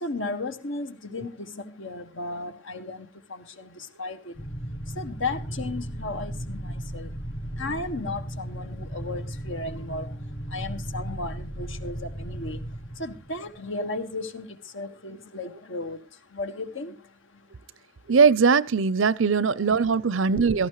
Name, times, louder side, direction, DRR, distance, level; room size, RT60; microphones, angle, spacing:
voice 1, 0.0-4.3 4.9-7.1 7.6-10.1 10.5-12.6 13.0-14.5 14.7-16.0 16.3-16.9, left 2 dB, 75° left, 1.7 m, -34 dB
sound 1, 4.3-14.0, right 1 dB, 45° left, 3.6 m, -36 dB
voice 2, 18.1-20.7, right 5 dB, 80° right, 0.6 m, -20 dB
17.0 x 14.0 x 3.1 m
head